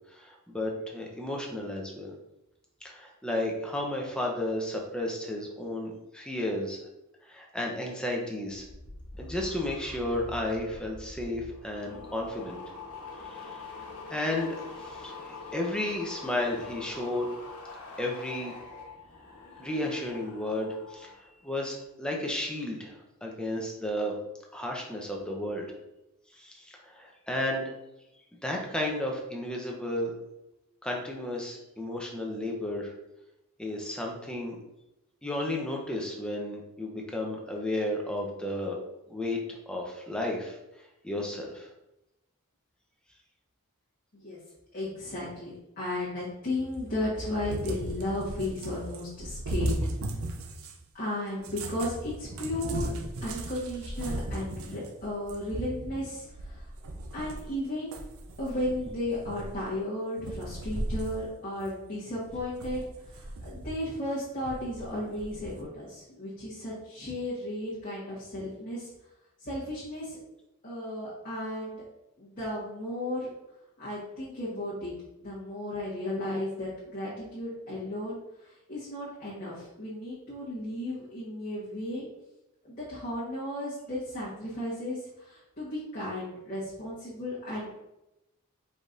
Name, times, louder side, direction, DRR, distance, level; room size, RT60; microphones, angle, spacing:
voice 1, 0.1-2.1 2.8-6.8 7.2-8.6 9.2-12.6 13.2-13.7 14.1-17.3 18.0-18.5 19.6-24.2 24.5-25.7 26.4-27.6 28.4-30.1 30.8-32.9 33.6-34.6 35.2-38.8 39.1-40.6 41.0-41.7, left 1 dB, 5° left, -1 dB, 0.7 m, -33 dB
sound 1, 8.5-21.1 21.4-21.9, left 3 dB, 85° left, 1.1 m, -44 dB
voice 2, 44.7-49.9 50.4-50.5 50.9-52.9 53.2-56.7 57.1-58.0 58.4-68.9 69.4-70.2 70.6-71.8 72.2-73.3 73.8-74.9 75.2-82.1 82.6-87.7, left 1 dB, 40° left, -9 dB, 1.4 m, -35 dB
Cat, 46.6-50.8 51.4-57.6 57.9-59.8 60.2-61.2 61.6-61.7 62.3-63.8 64.5-65.6, right 1 dB, 70° right, 0.6 m, -37 dB
5.1 x 4.0 x 2.6 m, 0.92 s
head